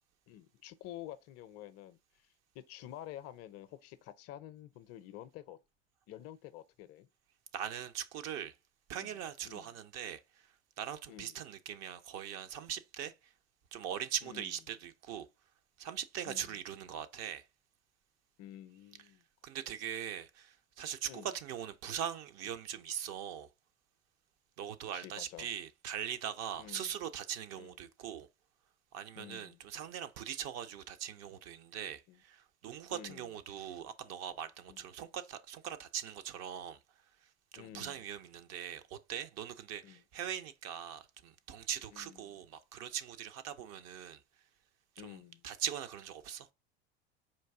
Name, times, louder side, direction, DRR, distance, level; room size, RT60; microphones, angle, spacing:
voice 1, 0.3-2.3 2.5-5.6 6.1-7.1 9.0-9.2 9.4-9.8 11.1-11.4 14.2-14.5 16.3-16.6 18.4-19.2 21.1-21.3 24.9-25.5 26.6-27.0 27.6-27.8 29.2-29.6 32.1-32.2 32.9-33.3 34.7-34.9 37.6-38.1 39.8-40.0 41.9-42.4 45.0-45.4, left 12 dB, 45° left, 0.6 m, -50 dB
voice 2, 7.5-8.5 8.9-10.5 10.8-13.3 13.7-15.3 15.8-17.5 19.4-23.5 24.6-28.3 28.9-36.8 37.5-44.2 45.0-46.5, right 9 dB, 50° right, 0.7 m, -41 dB
4.5 x 2.5 x 3.5 m
hypercardioid pair, 80°, 33 cm